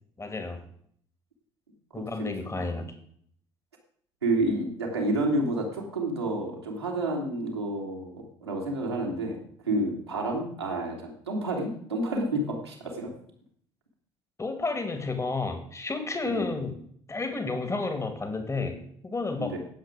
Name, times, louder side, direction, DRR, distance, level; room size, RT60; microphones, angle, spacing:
voice 1, 0.2-0.6 1.9-2.9 14.4-16.8 17.1-19.6, left 3 dB, 20° left, 7 dB, 2.5 m, -31 dB
voice 2, 4.2-9.4 9.6-13.1 16.3-16.5 19.4-19.6, right 1 dB, 85° right, -2 dB, 2.7 m, -29 dB
18.0 x 7.5 x 5.1 m, 0.63 s
figure-of-eight pair, 55°, 13 cm